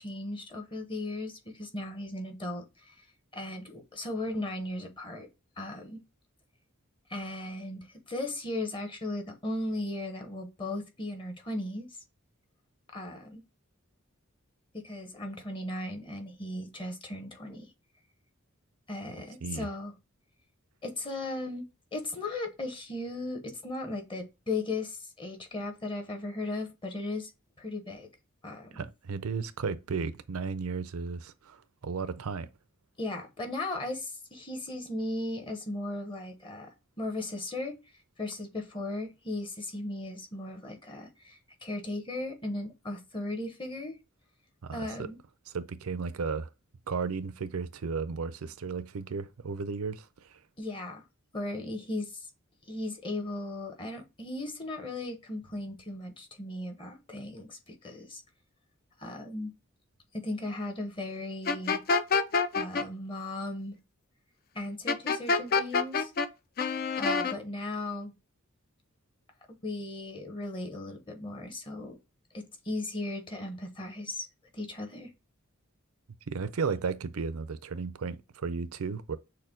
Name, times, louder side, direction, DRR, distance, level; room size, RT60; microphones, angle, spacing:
voice 1, 0.0-3.0 3.3-5.3 5.6-6.0 7.1-12.0 12.9-13.4 14.8-17.7 18.9-19.9 20.8-21.6 21.9-27.3 27.6-28.1 28.4-28.8 33.0-37.8 38.2-44.0 44.7-45.2 50.6-51.0 51.3-52.2 52.7-58.2 59.0-59.5 60.1-61.8 62.5-63.8 64.5-66.1 67.0-68.1 69.6-72.0 72.3-74.3 74.5-75.1, left 2 dB, 25° left, 1.0 m, -37 dB
voice 2, 28.7-32.5 44.6-45.1 45.5-46.5 46.9-50.4 76.3-79.2, right 5 dB, 90° right, 0.5 m, -34 dB
sound 1, 61.5-62.8 64.9-66.3 66.6-67.3, left 4 dB, 45° left, 0.4 m, -26 dB
6.5 x 2.2 x 3.7 m
head